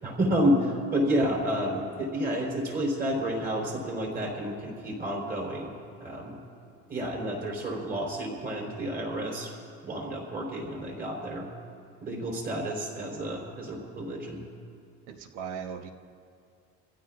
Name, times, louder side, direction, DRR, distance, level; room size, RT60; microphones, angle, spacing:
voice 1, 0.0-5.7 6.0-6.4 6.9-9.5 9.8-11.5 12.0-14.4, equal, 35° right, -3 dB, 4.3 m, -30 dB
voice 2, 15.1-15.9, right 7 dB, 80° right, 6 dB, 1.2 m, -38 dB
26.5 x 15.5 x 2.6 m, 2.4 s
cardioid pair, 175°, 30 cm